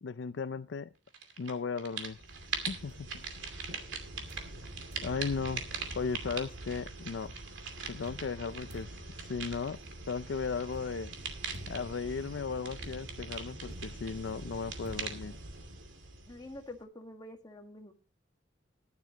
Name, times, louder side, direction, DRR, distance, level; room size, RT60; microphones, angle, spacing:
voice 1, 0.0-0.9 1.4-2.2 2.7-3.1 5.0-5.6 5.9-7.3 7.9-8.9 9.3-9.8 10.1-11.1 11.7-15.4, left 5 dB, 70° left, 12 dB, 0.4 m, -36 dB
sound 1, 1.1-1.5 1.8-16.8, right 4 dB, 90° right, 2.6 m, -41 dB
sound 2, 2.3-3.8 4.3-4.6 4.9-5.2 5.7-5.8 6.0-7.1 8.1-15.6, equal, 60° right, 2.9 m, -54 dB
voice 2, 16.3-17.9, left 1 dB, 20° left, 3 dB, 1.7 m, -47 dB
15.0 x 11.5 x 2.9 m, 0.32 s
head